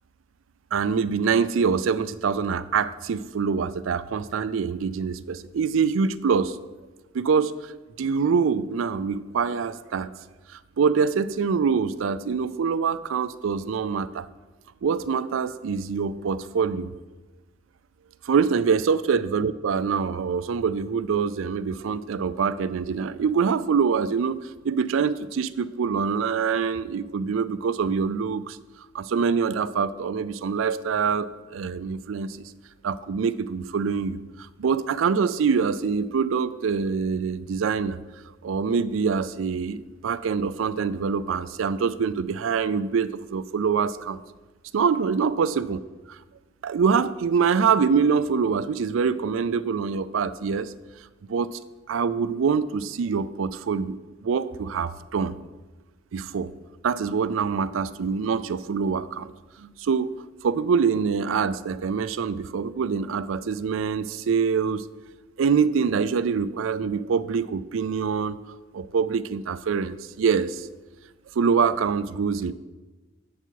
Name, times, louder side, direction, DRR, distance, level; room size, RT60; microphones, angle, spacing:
voice 1, 0.7-6.6 7.1-7.7 8.0-10.1 10.8-14.3 14.8-16.9 18.2-24.4 24.6-28.6 28.9-32.5 32.8-38.0 38.4-44.2 44.7-45.8 46.1-46.2 46.6-50.7 51.3-51.6 51.9-55.3 56.1-56.5 56.8-59.3 59.6-60.1 60.4-64.9 65.4-70.7 71.4-72.5, right 6 dB, 80° right, 15 dB, 0.4 m, -25 dB
8.0 x 7.3 x 4.6 m, 1.2 s
head